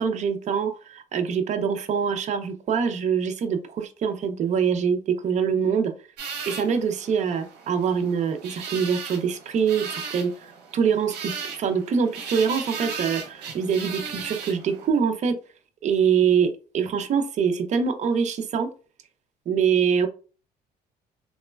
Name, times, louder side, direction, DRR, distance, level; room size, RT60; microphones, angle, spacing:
voice 1, 0.0-5.9 6.5-10.3 10.7-15.3 15.8-18.7 19.5-20.1, right 6 dB, 45° right, 7 dB, 0.5 m, -24 dB
sound 1, 6.2-14.9, right 5 dB, 80° right, 0.8 m, -36 dB
3.0 x 2.1 x 2.2 m, 0.36 s
cardioid pair, 110°, 17 cm